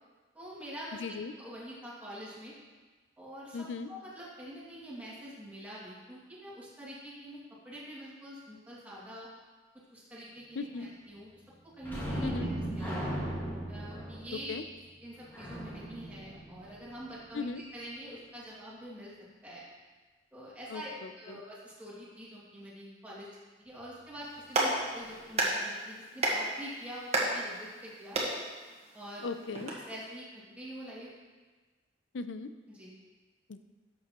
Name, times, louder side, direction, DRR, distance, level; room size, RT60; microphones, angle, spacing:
voice 1, 0.3-2.6 3.2-9.3 9.9-11.3 11.6-13.1 13.7-14.6 15.0-17.5 17.7-19.1 19.4-19.6 20.3-23.3 23.6-28.2 28.9-29.2 29.7-31.1 32.7-32.9, equal, 10° right, -8 dB, 2.3 m, -45 dB
voice 2, 1.0-1.3 3.5-3.9 10.6-10.9 12.2-12.5 14.5-14.6 17.3-17.6 20.7-21.4 29.2-29.7 32.1-32.5 33.5-33.6, left 4 dB, 85° left, 11 dB, 0.5 m, -37 dB
sound 1, 11.8-17.2 24.6-24.7 25.1-25.2, right 1 dB, 10° left, 1.9 m, -37 dB
Clapping, 24.2-29.7, right 2 dB, 35° right, 1.4 m, -33 dB
12.0 x 6.7 x 3.0 m, 1.3 s
head